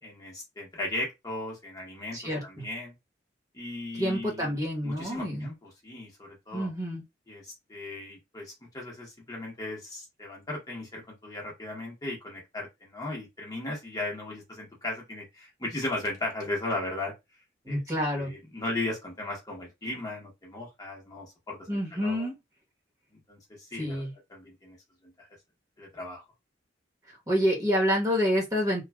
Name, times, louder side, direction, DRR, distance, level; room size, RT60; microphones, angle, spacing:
voice 1, 0.0-2.9 3.5-6.7 7.3-17.1 17.7-17.8 18.1-22.3 23.3-24.8 25.0-25.3 25.8-26.2, left 2 dB, 20° left, 0.9 m, -37 dB
voice 2, 2.1-2.7 3.9-5.5 6.5-7.0 17.6-18.3 21.7-22.3 23.8-24.1 27.3-28.8, equal, 20° right, 1.1 m, -28 dB
3.2 x 2.3 x 2.3 m
head